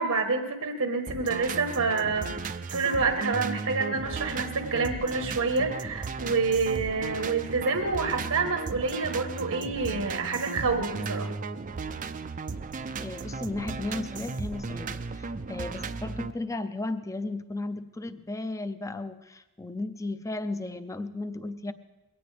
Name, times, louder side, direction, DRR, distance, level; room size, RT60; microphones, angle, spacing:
voice 1, 0.0-2.3 2.7-11.3, right 4 dB, 80° right, 5 dB, 1.4 m, -28 dB
sound 1, 1.1-16.3, right 4 dB, 35° right, 0.5 m, -35 dB
voice 2, 13.0-21.7, left 2 dB, 15° left, 11 dB, 0.6 m, -35 dB
21.0 x 17.5 x 3.4 m, 1.0 s
head